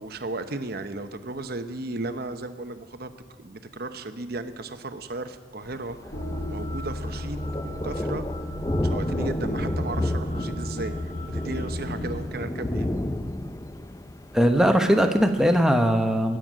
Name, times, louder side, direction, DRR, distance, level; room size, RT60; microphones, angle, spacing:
voice 1, 0.0-3.1 3.4-6.1 6.5-8.2 8.8-12.9, right 2 dB, 50° right, 9 dB, 0.9 m, -35 dB
Thunder, 5.6-15.6, left 1 dB, 15° left, 0.4 m, -32 dB
sound 1, 6.1-12.2, equal, 35° left, 1.4 m, -33 dB
voice 2, 14.3-16.4, equal, 5° right, 5 dB, 0.9 m, -20 dB
21.5 x 9.1 x 6.3 m, 1.5 s
head